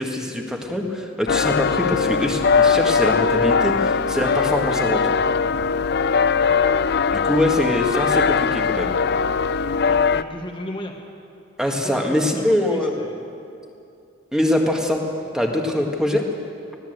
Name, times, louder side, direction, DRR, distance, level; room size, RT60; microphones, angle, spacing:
voice 1, 0.0-5.0 7.1-8.9 11.6-12.9 14.3-15.0 15.3-16.2, left 1 dB, 5° right, 1 dB, 1.6 m, -23 dB
sound 1, 1.3-10.2, left 5 dB, 55° left, 0.4 m, -20 dB
voice 2, 5.8-6.1 9.8-10.9 11.6-13.2, left 1 dB, 25° left, 1 dB, 1.4 m, -35 dB
20.0 x 16.5 x 8.0 m, 2.6 s
head